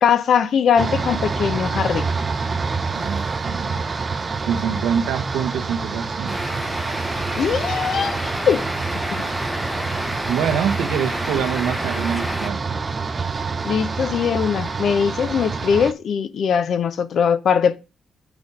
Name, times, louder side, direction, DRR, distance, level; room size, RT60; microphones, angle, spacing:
voice 1, 0.0-2.1 7.4-8.2 8.5-8.6 9.1-9.2 13.6-17.8, left 7 dB, 60° left, 0.6 m, -20 dB
sound 1, 0.8-15.9, right 4 dB, 30° right, 0.6 m, -27 dB
voice 2, 2.9-3.8 4.5-6.4 10.3-12.8, right 8 dB, 90° right, 1.0 m, -25 dB
sound 2, 6.3-12.5, equal, 5° left, 0.8 m, -30 dB
6.0 x 3.5 x 5.4 m
cardioid pair, 90°, 0 cm